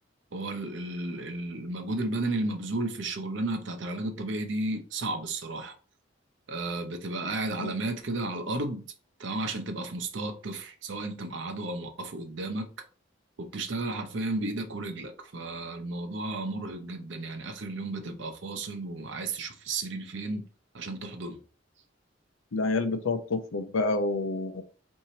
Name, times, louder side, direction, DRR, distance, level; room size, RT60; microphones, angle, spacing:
voice 1, 0.3-5.7 6.5-8.8 9.2-12.7 13.4-20.4 20.7-21.4, right 2 dB, 65° right, 0.7 m, -33 dB
voice 2, 22.5-24.6, left 3 dB, 90° left, 0.6 m, -28 dB
4.2 x 2.7 x 2.8 m
head